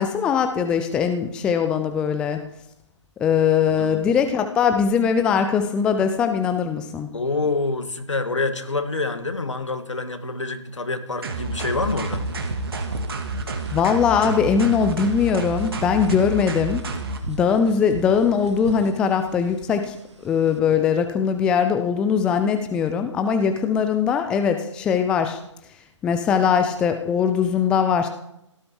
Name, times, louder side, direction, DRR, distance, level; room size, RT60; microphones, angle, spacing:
voice 1, 0.0-2.4 3.2-7.1 13.7-16.8 17.3-20.0 20.2-25.4 26.0-28.1, left 7 dB, 5° left, 7 dB, 0.5 m, -21 dB
voice 2, 3.7-4.1 7.1-12.2, left 3 dB, 70° left, 7 dB, 2.2 m, -27 dB
sound 1, 11.2-17.2, right 3 dB, 50° right, 2.2 m, -29 dB
sound 2, 11.8-20.6, right 3 dB, 65° right, 1.6 m, -37 dB
17.5 x 13.0 x 4.8 m, 0.78 s
figure-of-eight pair, 140°, 16 cm